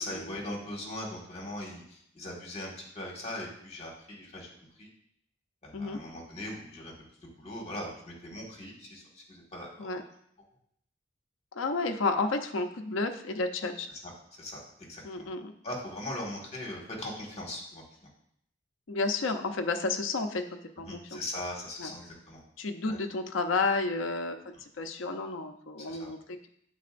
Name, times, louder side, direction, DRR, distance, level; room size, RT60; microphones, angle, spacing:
voice 1, 0.0-4.5 4.8-4.9 5.6-6.9 7.2-9.9 14.0-14.1 14.4-15.3 15.6-17.8 20.8-22.4 22.9-23.0 25.8-26.1, left 1 dB, 35° left, -2 dB, 1.8 m, -40 dB
voice 2, 11.6-13.9 15.0-15.5 18.9-20.4 20.8-21.2 21.8-21.9 22.6-24.4 24.8-26.5, left 3 dB, 80° left, 6 dB, 0.6 m, -31 dB
9.4 x 4.1 x 2.5 m, 0.71 s
head